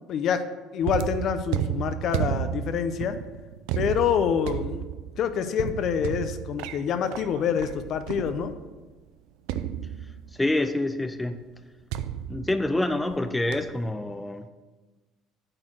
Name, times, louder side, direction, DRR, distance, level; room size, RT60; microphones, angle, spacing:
voice 1, 0.1-0.5 0.7-3.2 3.8-4.9 5.2-8.6, left 7 dB, 55° left, 10 dB, 0.7 m, -26 dB
sound 1, 0.8-8.8 9.5-10.5 11.9-13.2 13.5-13.9, right 10 dB, 85° right, 0.5 m, -33 dB
voice 2, 10.4-11.4 12.3-14.5, left 2 dB, 10° left, 9 dB, 0.5 m, -27 dB
8.8 x 4.4 x 6.2 m, 1.2 s
supercardioid pair, 100°, 0 cm